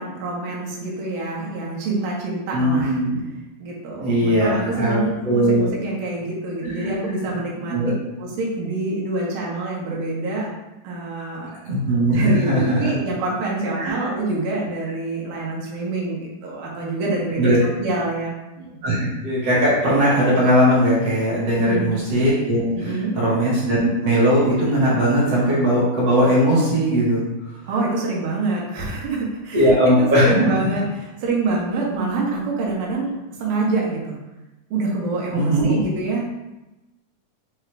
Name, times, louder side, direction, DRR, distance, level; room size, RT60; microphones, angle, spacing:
voice 1, 0.0-3.0 3.6-7.8 8.2-10.5 10.8-11.5 11.9-18.8 21.5-21.9 22.8-23.2 27.7-33.1 33.4-34.2 34.7-36.3, right 3 dB, 80° right, -3 dB, 2.6 m, -26 dB
voice 2, 2.5-3.2 4.0-5.7 6.6-7.0 7.7-7.9 11.7-12.8 13.8-14.0 17.4-17.6 18.8-27.2 29.5-30.5 35.3-35.7, equal, 55° right, -8 dB, 2.1 m, -19 dB
6.2 x 2.4 x 3.3 m, 1.0 s
omnidirectional pair, 4.0 m